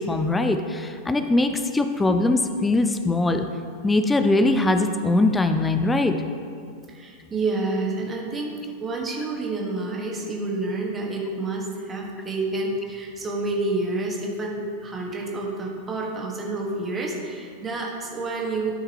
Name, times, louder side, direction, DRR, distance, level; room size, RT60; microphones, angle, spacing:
voice 1, 0.0-3.5 3.8-6.2, left 2 dB, 10° left, 7 dB, 0.4 m, -21 dB
voice 2, 6.9-8.5 8.8-18.7, right 2 dB, 20° right, -2 dB, 1.5 m, -29 dB
13.0 x 5.7 x 2.9 m, 2.3 s
figure-of-eight pair, 90°, 0 cm